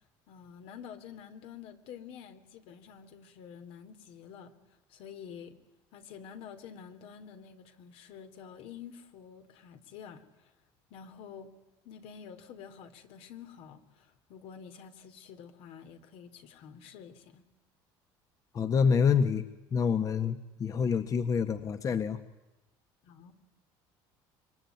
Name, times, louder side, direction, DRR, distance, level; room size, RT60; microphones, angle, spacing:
voice 1, 0.3-4.6 4.9-5.6 5.9-10.5 10.9-11.5 11.8-17.4 23.0-23.3, left 7 dB, 70° left, 8 dB, 3.3 m, -48 dB
voice 2, 18.5-22.2, left 6 dB, 35° left, 9 dB, 1.6 m, -27 dB
26.5 x 23.5 x 9.5 m, 1.0 s
cardioid pair, 125°, 10 cm